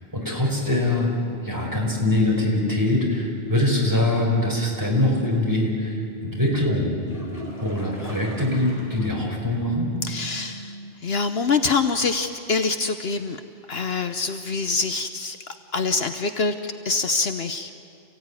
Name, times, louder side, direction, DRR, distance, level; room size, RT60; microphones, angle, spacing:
voice 1, 0.1-1.1 1.4-7.1 7.6-9.9, left 1 dB, 15° right, -2 dB, 4.9 m, -23 dB
sound 1, 0.9-10.9, right 2 dB, 60° right, 2.5 m, -41 dB
sound 2, 7.0-9.3 9.6-9.7 10.2-10.3 14.0-14.1, left 1 dB, 30° left, 4.1 m, -40 dB
voice 2, 10.1-10.8 11.0-13.4 13.7-15.4 15.7-17.7, left 4 dB, 65° left, 8 dB, 1.1 m, -25 dB
28.5 x 16.0 x 9.7 m, 2.4 s
omnidirectional pair, 1.2 m